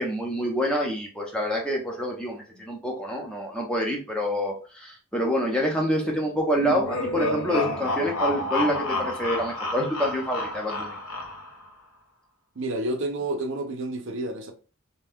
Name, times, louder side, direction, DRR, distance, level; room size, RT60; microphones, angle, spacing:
voice 1, 0.0-11.0, equal, 5° left, 0.7 m, -27 dB
sound 1, 6.5-11.7, left 2 dB, 85° left, 0.9 m, -30 dB
voice 2, 12.6-14.5, right 2 dB, 60° right, 0.6 m, -29 dB
2.6 x 2.3 x 3.4 m
head